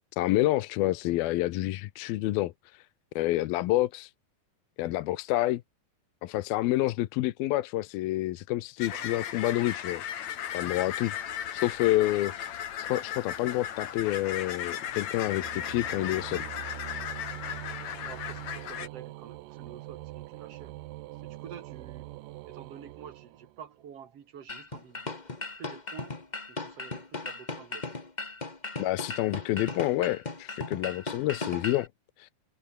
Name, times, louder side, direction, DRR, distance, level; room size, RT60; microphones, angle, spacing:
voice 1, 0.1-2.8 3.2-4.1 4.8-5.6 6.2-10.0 10.5-11.1 11.5-12.3 12.8-16.5 28.8-31.9 32.2-32.3, left 16 dB, 75° left, 2.7 m, -28 dB
sound 1, 8.8-18.9, left 10 dB, 55° left, 2.6 m, -36 dB
voice 2, 8.8-9.2 18.0-20.8 21.2-22.1 22.4-25.1 25.6-26.1 26.5-28.0, right 8 dB, 45° right, 2.5 m, -48 dB
sound 2, 13.0-23.9, right 18 dB, 75° right, 2.1 m, -44 dB
sound 3, 24.5-31.9, left 3 dB, 35° left, 0.7 m, -37 dB
omnidirectional pair, 4.4 m